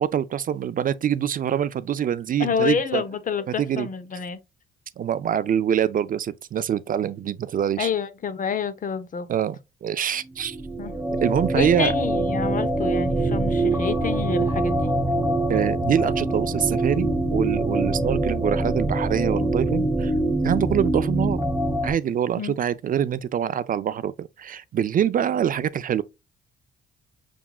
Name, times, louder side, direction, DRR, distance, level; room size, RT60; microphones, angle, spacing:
voice 1, 0.0-3.0 3.6-3.9 5.0-7.9 9.3-10.6 11.1-11.9 15.5-20.1 20.4-21.4 21.8-26.0, right 9 dB, 45° right, 0.4 m, -25 dB
voice 2, 2.4-4.4 7.8-9.3 10.8-10.9 11.5-14.9 22.4-22.6, left 6 dB, 40° left, 0.7 m, -28 dB
sound 1, 10.3-21.9, right 2 dB, 5° right, 1.2 m, -24 dB
5.9 x 3.6 x 2.3 m
cardioid pair, 90°, 20 cm